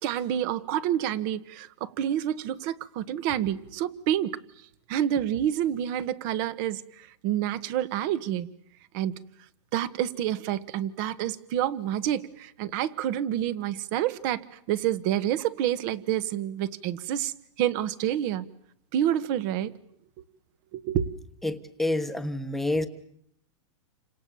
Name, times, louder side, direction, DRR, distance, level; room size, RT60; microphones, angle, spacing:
voice 1, 0.0-4.4 4.9-8.5 8.9-9.2 9.7-18.5 18.9-19.7 20.7-21.1, right 11 dB, 40° right, 1.4 m, -28 dB
voice 2, 21.4-22.9, left 1 dB, ahead, 1.2 m, -28 dB
29.5 x 26.0 x 7.1 m
supercardioid pair, 155°, 16 cm